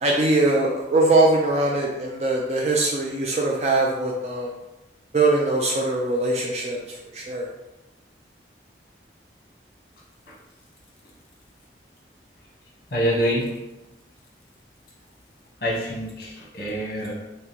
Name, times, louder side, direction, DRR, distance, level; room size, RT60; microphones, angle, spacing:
voice 1, 0.0-4.5 5.1-7.5, right 2 dB, 35° right, -1 dB, 0.4 m, -22 dB
voice 2, 12.9-13.5 15.6-17.1, equal, 55° left, -3 dB, 1.0 m, -25 dB
3.6 x 2.9 x 2.9 m, 1.0 s
head